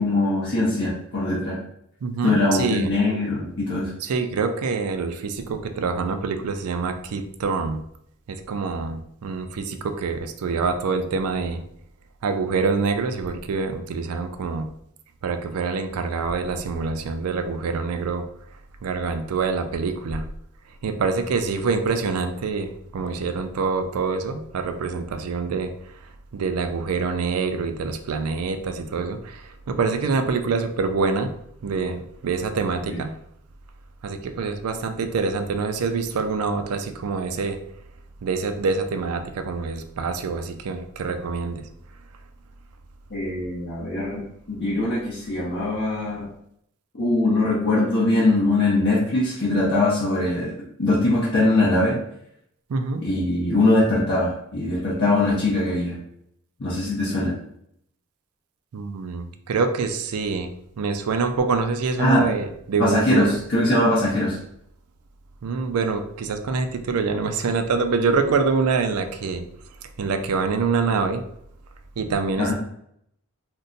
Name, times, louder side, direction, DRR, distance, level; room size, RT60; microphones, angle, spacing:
voice 1, 0.0-1.6 2.2-3.9 32.9-33.0 43.1-44.2 44.5-46.3 46.9-52.0 53.0-56.0 56.6-57.3 62.0-62.3 62.8-64.4 72.4-72.5, left 2 dB, 50° left, -7 dB, 0.7 m, -22 dB
voice 2, 2.0-2.9 4.0-7.8 8.3-11.6 12.2-14.7 15.2-18.3 18.8-20.2 20.8-25.7 26.3-31.3 31.6-33.1 34.0-37.6 38.2-41.7 52.7-53.0 58.7-60.5 60.8-63.4 65.4-69.4 70.0-71.2 72.0-72.5, right 4 dB, 85° right, 7 dB, 0.4 m, -25 dB
2.6 x 2.2 x 3.8 m, 0.72 s
head